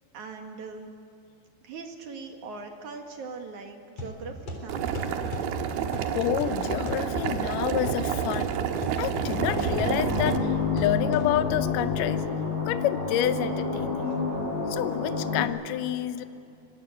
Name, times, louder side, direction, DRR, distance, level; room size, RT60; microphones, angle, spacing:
voice 1, 0.1-0.9 1.6-5.0 14.0-14.2, right 4 dB, 55° right, 4 dB, 2.8 m, -40 dB
sound 1, 4.0-11.7, left 1 dB, 40° left, 4.7 m, -39 dB
Boiling, 4.7-10.4, right 8 dB, 75° right, 3.0 m, -29 dB
voice 2, 6.1-8.6 9.0-12.3 12.7-14.2 14.7-16.2, left 12 dB, 75° left, 11 dB, 2.1 m, -29 dB
sound 2, 9.2-15.4, left 4 dB, 55° left, 7.1 m, -29 dB
26.0 x 22.5 x 7.9 m, 2.6 s
omnidirectional pair, 4.7 m